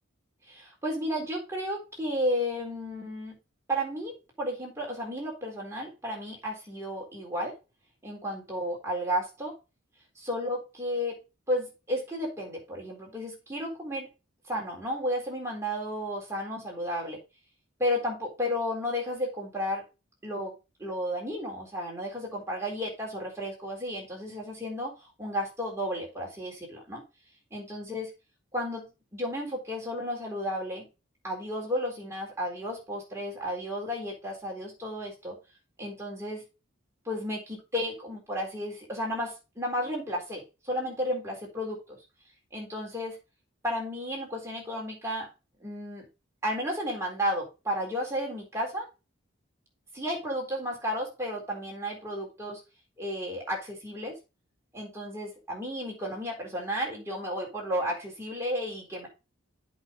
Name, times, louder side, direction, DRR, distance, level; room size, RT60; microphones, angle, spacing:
voice 1, 0.5-3.4 3.7-4.1 4.4-7.6 8.0-9.5 10.2-11.2 11.5-14.1 14.5-17.2 17.8-19.8 20.2-20.5 20.8-27.0 27.5-28.1 28.5-30.9 31.2-35.4 35.8-36.4 37.1-42.0 42.5-43.2 43.6-45.3 45.6-46.1 46.4-48.9 49.9-52.6 53.0-54.2 54.7-59.1, equal, 15° right, -2 dB, 4.0 m, -33 dB
8.0 x 5.8 x 5.3 m, 0.28 s
head